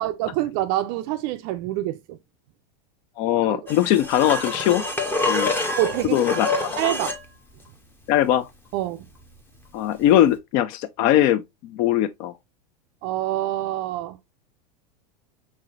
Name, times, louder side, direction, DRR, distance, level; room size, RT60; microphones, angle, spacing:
voice 1, 0.0-2.2 3.5-3.6 5.8-6.2 6.8-7.1 8.7-9.1 13.0-14.2, right 14 dB, 50° right, 0.4 m, -26 dB
voice 2, 3.2-4.8 5.3-5.5 6.1-6.8 8.1-8.5 9.7-12.3, left 12 dB, 45° left, 0.4 m, -21 dB
sound 1, 3.7-7.3 10.2-10.3, left 2 dB, 10° left, 0.7 m, -26 dB
4.7 x 4.1 x 2.4 m
supercardioid pair, 135°, 21 cm